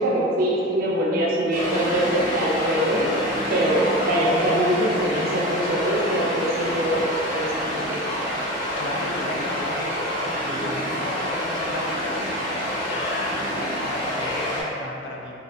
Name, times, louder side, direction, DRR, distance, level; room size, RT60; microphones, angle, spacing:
voice 1, 0.0-3.0 3.5-7.1 7.3-8.0, right 1 dB, 55° right, -4 dB, 0.4 m, -23 dB
sound 1, 1.5-14.6, equal, 40° left, 0.7 m, -27 dB
voice 2, 8.8-9.9 10.3-15.4, left 2 dB, 70° left, -1 dB, 0.3 m, -34 dB
2.3 x 2.1 x 2.6 m, 2.8 s
head